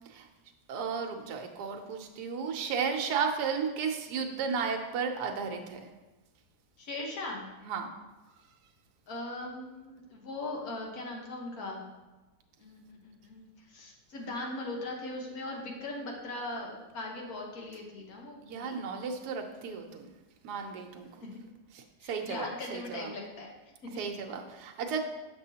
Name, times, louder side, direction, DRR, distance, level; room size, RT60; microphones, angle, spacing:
voice 1, 0.7-5.8 7.6-7.9 18.4-20.1 20.4-21.1 22.0-23.1 24.0-25.0, right 6 dB, 80° right, 3 dB, 1.2 m, -34 dB
voice 2, 6.8-7.5 9.1-11.8 12.6-18.7 21.2-21.4 22.0-23.5 23.8-24.0, left 2 dB, 65° left, -1 dB, 1.6 m, -39 dB
7.2 x 6.1 x 2.8 m, 1.1 s
omnidirectional pair, 1.7 m